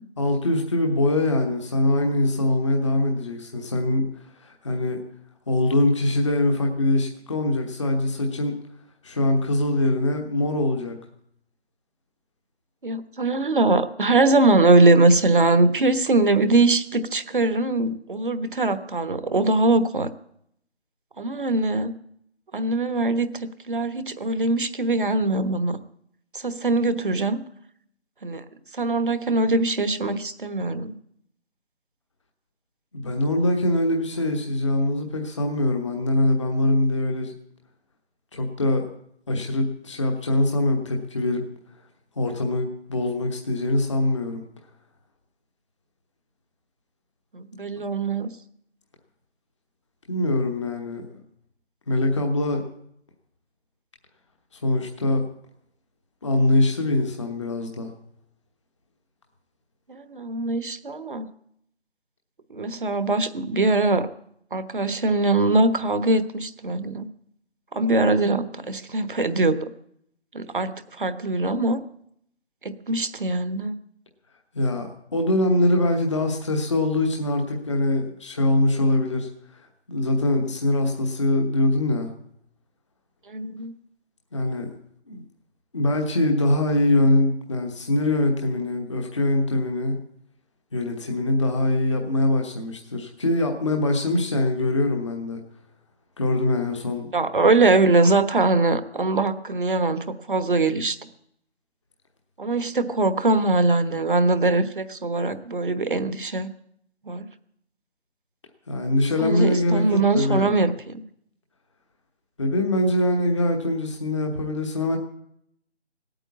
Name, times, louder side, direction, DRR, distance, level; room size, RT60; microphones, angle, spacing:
voice 1, 0.2-5.0 5.5-8.5 9.0-10.9 32.9-37.3 38.3-38.8 39.3-41.4 42.2-44.4 50.1-51.2 51.9-52.6 54.5-55.3 56.2-57.9 74.5-82.1 84.3-84.7 85.1-85.2 85.7-90.0 90.7-95.4 96.2-97.1 108.7-110.5 112.4-115.0, left 1 dB, 25° left, 3 dB, 1.1 m, -23 dB
voice 2, 12.8-20.1 21.2-21.9 22.5-25.8 26.3-27.4 28.2-28.4 28.8-30.9 47.3-48.3 59.9-61.3 62.5-64.1 64.5-67.1 67.7-69.7 70.3-70.7 71.0-71.8 72.6-73.7 83.3-83.7 97.1-101.0 102.4-106.5 107.1-107.3 109.2-111.0, right 2 dB, 50° right, 12 dB, 1.2 m, -22 dB
17.0 x 9.1 x 8.3 m, 0.71 s
figure-of-eight pair, 160°, 33 cm